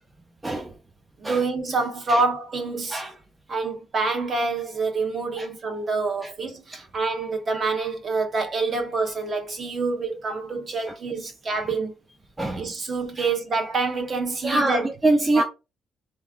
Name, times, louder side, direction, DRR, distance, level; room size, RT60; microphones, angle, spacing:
voice 1, 0.4-0.7 1.2-1.4 2.1-2.2 2.9-3.1 5.4-5.5 12.4-12.6 14.4-15.4, right 2 dB, 15° right, 0.5 m, -23 dB
voice 2, 1.2-3.0 3.5-11.9 12.6-14.9 15.3-15.4, right 3 dB, 40° right, 1.0 m, -26 dB
3.4 x 3.1 x 3.7 m
cardioid pair, 150°, 0 cm